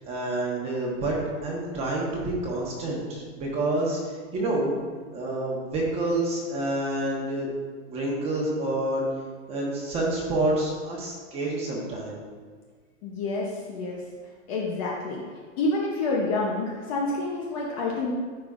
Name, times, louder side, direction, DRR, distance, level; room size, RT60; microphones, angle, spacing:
voice 1, 0.1-4.7 5.1-7.5 7.9-9.1 9.5-12.2, right 2 dB, 15° right, -3 dB, 1.1 m, -28 dB
voice 2, 13.0-14.0 14.5-15.2 15.6-18.1, left 2 dB, 25° left, -3 dB, 0.7 m, -28 dB
13.5 x 5.2 x 2.5 m, 1.6 s
supercardioid pair, 170°, 39 cm